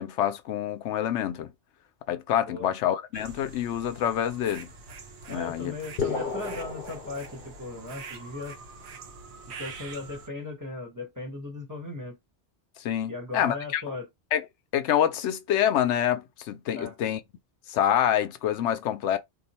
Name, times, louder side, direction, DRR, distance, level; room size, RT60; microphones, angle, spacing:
voice 1, 0.0-1.5 2.1-4.7 5.3-5.7 12.8-13.8 14.3-14.4 14.7-17.2 17.7-19.2, left 10 dB, 85° left, 0.9 m, -26 dB
sound 1, 3.1-10.3, right 4 dB, 70° right, 1.0 m, -45 dB
voice 2, 5.3-8.6 9.5-12.2 13.1-14.1 16.7-17.0, left 2 dB, 15° right, 1.1 m, -37 dB
sound 2, 6.0-7.9, left 5 dB, 55° left, 0.9 m, -33 dB
2.7 x 2.4 x 4.1 m
omnidirectional pair, 1.2 m